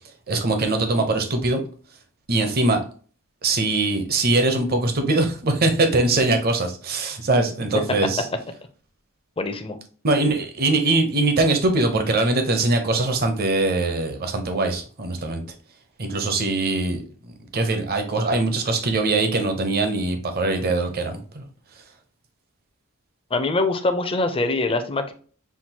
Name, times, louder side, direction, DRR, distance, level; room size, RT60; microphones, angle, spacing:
voice 1, 0.3-1.6 2.3-2.8 3.4-8.3 10.0-15.4 16.0-17.0 17.5-21.5, right 2 dB, 45° right, 6 dB, 0.8 m, -22 dB
voice 2, 9.4-9.8 23.3-25.1, left 2 dB, 25° left, 7 dB, 0.6 m, -23 dB
5.8 x 2.5 x 2.8 m, 0.41 s
head